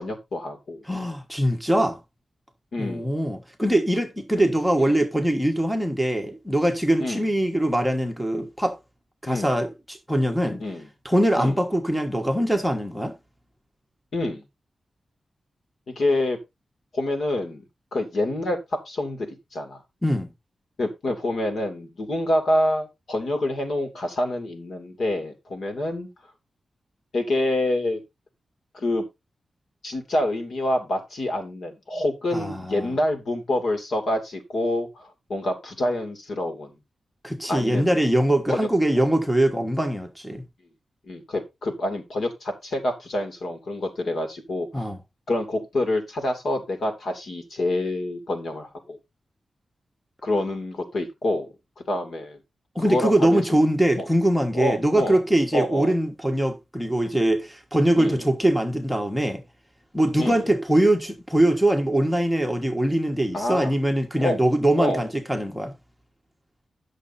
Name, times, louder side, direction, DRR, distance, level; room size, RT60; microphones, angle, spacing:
voice 1, 0.0-0.8 2.7-3.1 4.4-4.5 4.8-4.9 7.0-7.3 9.3-9.5 10.6-10.8 11.4-11.6 14.1-14.4 15.9-16.4 16.9-17.6 17.9-19.8 20.8-26.1 27.1-28.0 28.7-29.0 29.8-36.7 37.5-37.9 38.5-38.7 39.0-39.1 41.1-44.9 45.3-49.0 50.2-51.5 51.9-52.4 52.8-53.4 54.0-54.1 54.5-55.2 55.5-56.0 58.0-58.3 60.2-60.5 63.3-63.7 64.2-64.4 64.8-65.1, left 1 dB, 55° left, 2.5 m, -27 dB
voice 2, 0.9-2.0 2.8-8.8 9.2-10.6 11.0-13.1 20.0-20.3 32.3-32.9 37.2-40.4 44.7-45.0 52.7-59.4 59.9-65.7, right 1 dB, ahead, 1.3 m, -22 dB
10.5 x 6.6 x 4.1 m
wide cardioid pair, 175°, 0 cm